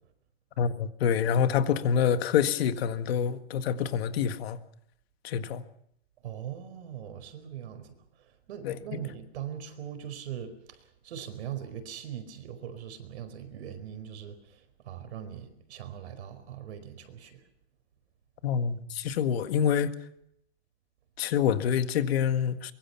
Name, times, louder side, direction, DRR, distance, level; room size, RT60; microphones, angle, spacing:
voice 1, 0.6-4.6 5.2-5.6 8.6-9.0 18.4-19.9 21.2-22.7, left 8 dB, 60° left, 9 dB, 1.8 m, -26 dB
voice 2, 6.2-7.9 8.5-17.4, right 9 dB, 70° right, 10 dB, 4.8 m, -41 dB
24.0 x 22.5 x 5.9 m, 0.73 s
supercardioid pair, 165°, 34 cm